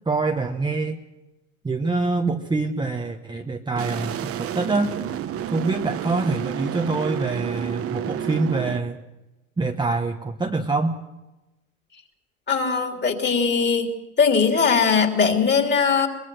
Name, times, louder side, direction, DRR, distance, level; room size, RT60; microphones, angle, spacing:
voice 1, 0.0-1.0 1.6-4.9 5.5-9.0 9.6-11.0, right 3 dB, 10° right, 2 dB, 1.2 m, -25 dB
sound 1, 3.8-8.8, right 10 dB, 35° right, 1.2 m, -30 dB
voice 2, 12.5-13.9 14.2-16.1, left 5 dB, 25° left, 4 dB, 3.2 m, -20 dB
23.0 x 21.0 x 6.4 m, 1.0 s
hypercardioid pair, 100°, 41 cm